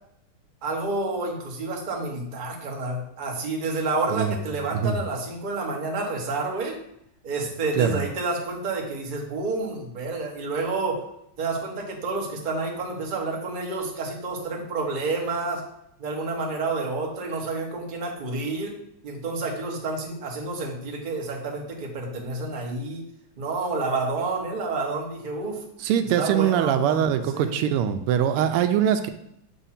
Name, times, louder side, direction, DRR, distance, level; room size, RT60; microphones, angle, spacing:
voice 1, 0.6-6.8 7.2-11.0 11.4-15.6 16.0-18.7 19.0-23.0 23.4-25.6 26.2-27.6, right 3 dB, 35° right, 0 dB, 0.8 m, -29 dB
voice 2, 7.8-8.1 25.8-29.1, right 9 dB, 90° right, 9 dB, 1.5 m, -23 dB
6.9 x 2.7 x 5.7 m, 0.76 s
omnidirectional pair, 2.4 m